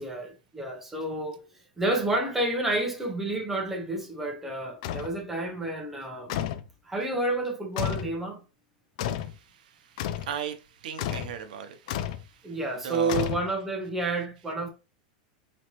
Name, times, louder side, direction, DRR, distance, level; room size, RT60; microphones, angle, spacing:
voice 1, 0.0-1.4 1.8-6.3 6.9-8.4 12.4-14.7, right 2 dB, 5° right, 0.9 m, -30 dB
sound 1, 4.8-5.2 6.3-6.7 7.8-8.2 9.0-9.4 10.0-10.3 11.0-11.4 11.9-12.2 13.1-13.7, left 11 dB, 60° left, 0.4 m, -31 dB
voice 2, 9.2-12.6 12.8-13.3, right 8 dB, 85° right, 0.8 m, -38 dB
4.2 x 3.1 x 3.1 m
supercardioid pair, 150°, 4 cm